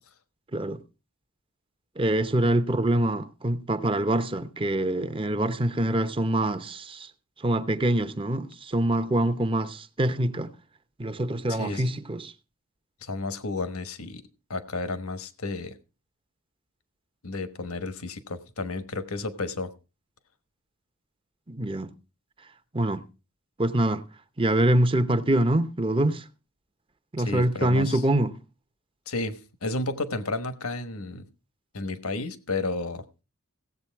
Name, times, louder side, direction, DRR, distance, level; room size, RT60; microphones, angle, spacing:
voice 1, 2.0-7.1 7.4-10.5 11.0-12.3 21.5-21.9 22.7-23.0 23.6-24.1 24.4-26.2 27.1-28.4, right 1 dB, 25° right, 0.8 m, -25 dB
voice 2, 11.5-11.9 13.0-14.2 14.5-15.7 17.2-19.7 27.2-28.0 29.1-31.2 31.7-33.0, left 3 dB, 75° left, 1.3 m, -32 dB
17.0 x 8.1 x 4.6 m
head